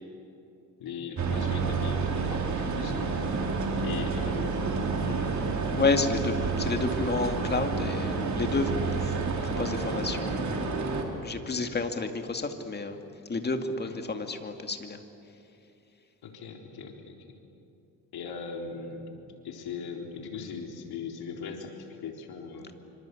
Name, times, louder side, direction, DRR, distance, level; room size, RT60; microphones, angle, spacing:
voice 1, 0.8-3.2 3.8-5.4 13.8-13.9 16.2-17.2 18.1-19.1 19.4-21.7 22.0-22.7, left 5 dB, 80° left, 2 dB, 4.0 m, -39 dB
sound 1, 1.2-11.0, right 4 dB, 50° right, 3.7 m, -29 dB
voice 2, 5.8-8.7 9.0-9.1 9.4-13.0 13.3-15.0, left 3 dB, 25° left, 6 dB, 2.2 m, -30 dB
26.5 x 25.5 x 8.5 m, 2.8 s
cardioid pair, 125°, 37 cm